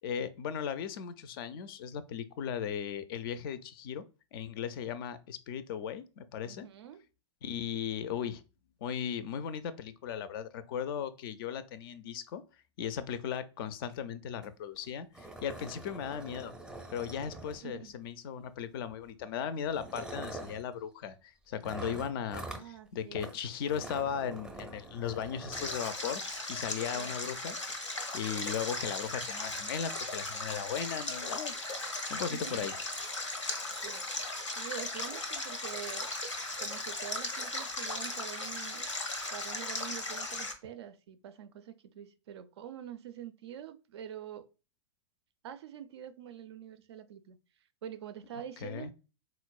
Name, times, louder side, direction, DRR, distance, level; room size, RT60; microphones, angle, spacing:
voice 1, 0.0-4.0 4.3-6.7 7.4-8.4 8.8-12.4 12.8-16.5 16.9-27.6 27.9-32.7 48.6-48.9, left 8 dB, 50° left, 0.4 m, -37 dB
voice 2, 6.4-7.0 17.6-17.9 22.5-23.3 26.9-27.1 32.3-32.7 33.8-34.1 34.5-36.1 36.6-38.9 39.3-44.5 45.4-47.4 47.8-48.9, right 9 dB, 65° right, 0.4 m, -45 dB
sound 1, 14.4-14.5 14.8-14.9 15.1-17.9 18.9-19.1 19.7-20.6 21.6-22.7 23.2-23.4 23.6-25.8, right 2 dB, 5° right, 0.5 m, -44 dB
Stream, 25.5-40.5, left 2 dB, 90° left, 0.6 m, -37 dB
3.9 x 2.0 x 2.2 m
figure-of-eight pair, 95°, 15 cm